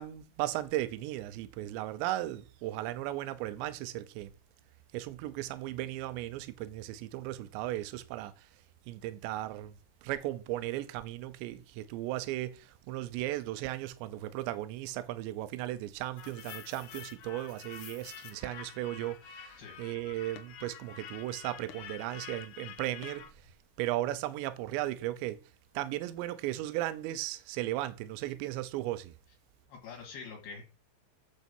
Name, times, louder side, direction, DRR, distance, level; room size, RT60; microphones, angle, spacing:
voice 1, 0.0-4.3 4.9-8.5 8.9-23.3 23.8-25.4 25.7-29.1, right 15 dB, 85° right, 3.0 m, -36 dB
sound 1, 16.2-23.3, left 8 dB, 80° left, 1.8 m, -48 dB
voice 2, 29.7-30.6, left 5 dB, 60° left, 3.5 m, -45 dB
8.7 x 7.3 x 5.3 m
omnidirectional pair, 5.1 m